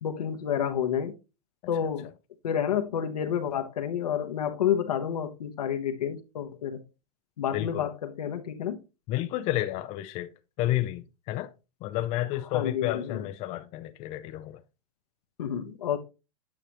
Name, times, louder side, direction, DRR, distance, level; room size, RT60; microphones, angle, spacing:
voice 1, 0.0-1.1 1.7-2.1 2.4-6.8 7.4-8.8 12.5-13.2 15.4-16.0, left 9 dB, 85° left, 1.0 m, -29 dB
voice 2, 7.5-7.9 9.1-10.3 10.6-11.5 11.8-14.6, left 14 dB, 35° left, 0.5 m, -31 dB
9.0 x 4.9 x 2.9 m
hypercardioid pair, 125°, 19 cm